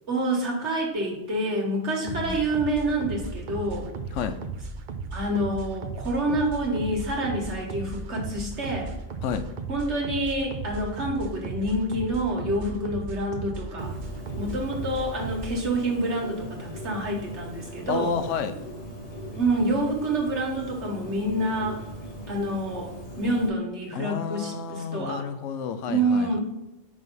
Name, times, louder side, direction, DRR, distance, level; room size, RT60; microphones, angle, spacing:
voice 1, 0.1-3.9 5.1-8.9 9.7-13.9 14.4-18.1 19.4-21.8 22.3-25.2 25.9-26.4, right 1 dB, 70° right, -1 dB, 1.8 m, -27 dB
voice 2, 2.0-2.4 4.1-4.4 9.2-9.5 17.9-18.6 23.9-26.4, left 6 dB, 90° left, 10 dB, 1.0 m, -30 dB
sound 1, 2.1-15.7, right 3 dB, 55° right, 0.6 m, -36 dB
Bird, 13.8-23.5, equal, 35° left, 1.0 m, -40 dB
5.4 x 3.4 x 5.4 m, 0.99 s
omnidirectional pair, 1.2 m